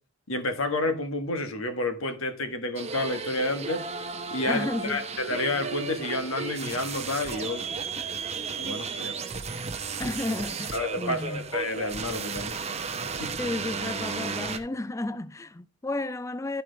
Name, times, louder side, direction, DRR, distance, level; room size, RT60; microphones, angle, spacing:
voice 1, 0.3-3.8 4.3-7.7 8.6-9.1 10.7-12.6 13.2-13.3, left 2 dB, 75° left, 1.3 m, -30 dB
sound 1, 2.8-14.6, right 5 dB, 30° right, 0.8 m, -34 dB
voice 2, 4.5-5.1 10.0-11.5 13.4-16.6, left 2 dB, 15° left, 0.3 m, -32 dB
12.5 x 4.6 x 3.9 m
head